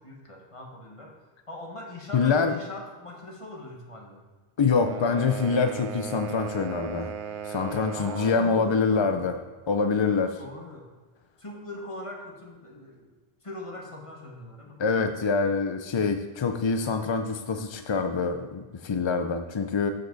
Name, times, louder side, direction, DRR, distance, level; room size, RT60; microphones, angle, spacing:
voice 1, 0.0-4.3 7.9-9.3 10.4-10.9 11.4-13.1 13.4-14.8, left 1 dB, 30° left, 0 dB, 1.5 m, -41 dB
voice 2, 2.1-2.5 4.6-7.1 7.4-9.4 9.7-10.4 14.8-19.9, left 5 dB, 45° left, 7 dB, 0.3 m, -25 dB
sound 1, 4.7-8.6, right 8 dB, 75° right, 0.8 m, -37 dB
12.5 x 5.3 x 4.0 m, 1.3 s
omnidirectional pair, 1.0 m